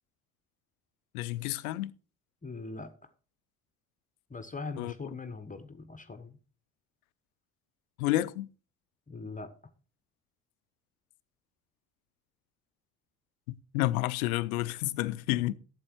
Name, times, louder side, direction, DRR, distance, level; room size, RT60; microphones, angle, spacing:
voice 1, 1.1-1.9 4.8-4.9 8.0-8.5 13.5-15.5, left 16 dB, 75° left, 0.6 m, -30 dB
voice 2, 2.4-2.9 4.3-6.4 9.1-9.5, left 4 dB, 20° left, 1.2 m, -41 dB
12.5 x 7.6 x 4.5 m
figure-of-eight pair, 50°, 44 cm